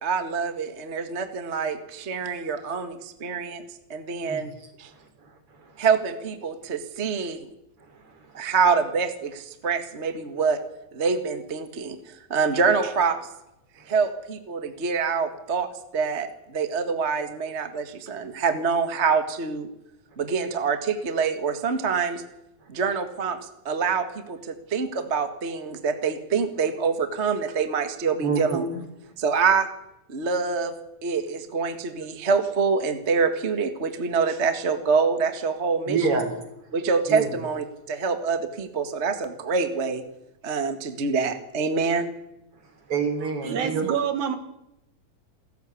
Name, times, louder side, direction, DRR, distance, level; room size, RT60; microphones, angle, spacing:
voice 1, 0.0-3.6 3.9-4.5 4.8-4.9 5.8-7.5 8.3-10.6 10.9-12.0 12.3-13.2 13.9-15.7 15.9-19.7 20.2-22.2 22.7-23.4 23.6-28.6 29.2-29.7 30.1-30.7 31.0-36.2 36.7-40.0 40.4-42.1, right 5 dB, 30° right, 1.6 m, -25 dB
voice 2, 4.9-5.9 7.9-8.5 13.8-13.9 28.2-28.8 29.0-29.1 35.9-36.3 37.1-37.4 42.9-44.0, right 5 dB, 50° right, 4.4 m, -28 dB
voice 3, 43.4-44.4, right 8 dB, 80° right, 3.0 m, -26 dB
28.0 x 14.0 x 8.5 m
omnidirectional pair, 3.3 m